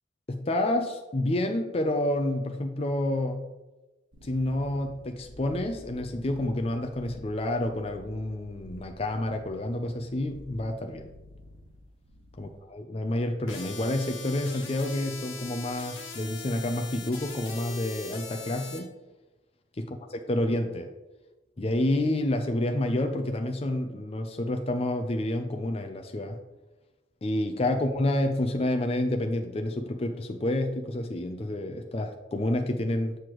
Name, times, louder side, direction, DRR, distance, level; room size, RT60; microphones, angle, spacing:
voice 1, 0.3-3.5 4.2-11.1 12.4-18.9 19.8-19.9 20.3-20.9 21.6-26.4 27.2-33.2, left 1 dB, 30° left, 5 dB, 0.5 m, -29 dB
sound 1, 4.1-12.6, equal, 90° right, 1.4 m, -50 dB
sound 2, 13.5-18.8, left 4 dB, 80° left, 1.4 m, -41 dB
7.7 x 6.6 x 3.0 m, 1.1 s
head